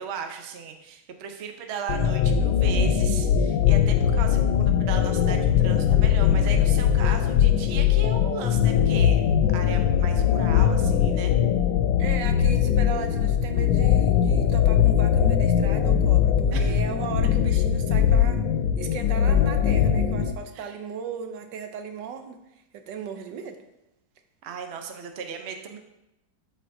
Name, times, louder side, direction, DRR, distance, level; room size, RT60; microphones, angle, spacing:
voice 1, 0.0-9.2 9.5-11.3 16.5-16.8 20.5-20.8 24.4-25.8, right 6 dB, 55° right, 5 dB, 0.7 m, -36 dB
sound 1, 1.9-20.3, left 9 dB, 85° left, 1.3 m, -21 dB
voice 2, 12.0-18.4 18.8-22.4 22.7-23.6, right 6 dB, 80° right, 7 dB, 1.3 m, -36 dB
12.0 x 4.4 x 2.6 m, 0.90 s
omnidirectional pair, 1.9 m